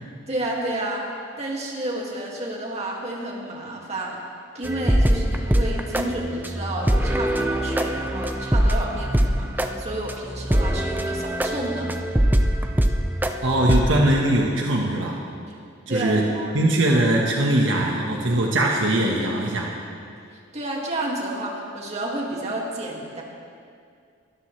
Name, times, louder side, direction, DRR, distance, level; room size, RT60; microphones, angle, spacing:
voice 1, 0.3-1.1 1.4-4.2 4.5-11.9 15.9-16.5 20.5-23.2, right 1 dB, 35° right, -2 dB, 2.3 m, -30 dB
sound 1, 4.6-14.1, equal, 10° right, 0.6 m, -23 dB
voice 2, 13.4-15.2 15.9-16.3 16.5-19.7, right 1 dB, 70° right, -1 dB, 1.4 m, -21 dB
22.5 x 13.5 x 3.3 m, 2.3 s
head